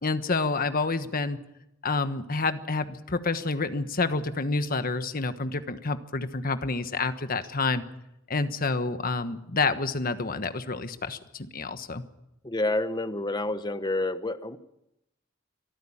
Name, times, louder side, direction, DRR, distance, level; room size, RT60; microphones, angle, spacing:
voice 1, 0.0-1.4 1.8-7.8 8.3-12.0, left 3 dB, 50° left, 10 dB, 1.3 m, -28 dB
voice 2, 12.4-14.6, left 2 dB, 20° left, 11 dB, 1.1 m, -28 dB
23.5 x 14.5 x 8.7 m, 0.87 s
head